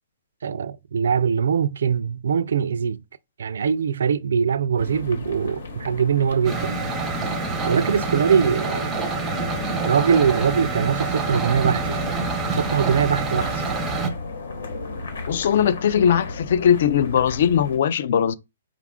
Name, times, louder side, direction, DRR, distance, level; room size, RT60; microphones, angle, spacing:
voice 1, 0.4-3.0 3.4-6.9 7.7-9.0 9.9-12.1 12.5-13.5, right 7 dB, 75° right, 0.3 m, -22 dB
sound 1, 4.8-17.8, left 3 dB, 70° left, 1.2 m, -35 dB
sound 2, 6.4-14.1, right 3 dB, 10° right, 0.6 m, -27 dB
voice 2, 15.3-18.3, left 8 dB, 50° left, 0.3 m, -20 dB
4.7 x 2.4 x 3.5 m
hypercardioid pair, 170°, 0 cm